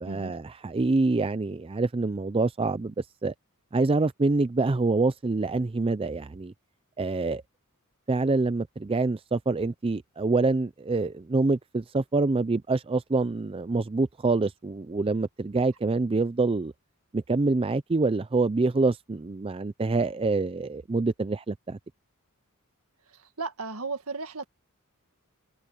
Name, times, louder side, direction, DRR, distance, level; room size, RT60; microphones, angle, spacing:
voice 1, 0.0-2.9 3.2-3.3 3.7-6.5 7.0-7.4 8.1-16.7 17.1-21.8, right 3 dB, 25° right, 0.4 m, -26 dB
voice 2, 23.1-24.4, right 4 dB, 70° right, 2.0 m, -35 dB
head